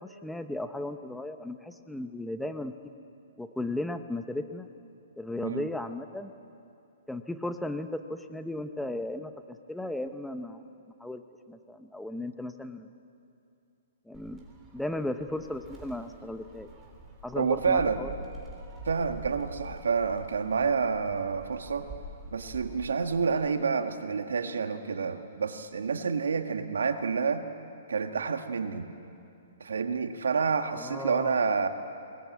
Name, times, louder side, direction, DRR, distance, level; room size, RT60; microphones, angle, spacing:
voice 1, 0.0-2.7 3.4-4.7 5.2-6.3 7.1-9.3 9.7-10.6 11.0-11.2 11.5-12.9 14.1-14.4 14.7-16.7 17.2-18.1 30.7-31.4, left 1 dB, 5° left, 8 dB, 0.9 m, -35 dB
Gull seagull, 14.1-23.5, right 1 dB, 15° right, 3.8 m, -46 dB
voice 2, 17.4-18.0 18.8-21.9 22.3-27.4 27.9-28.9 29.6-31.7, right 5 dB, 85° right, 7 dB, 1.5 m, -28 dB
21.5 x 19.5 x 8.4 m, 2.6 s
hypercardioid pair, 135°, 0 cm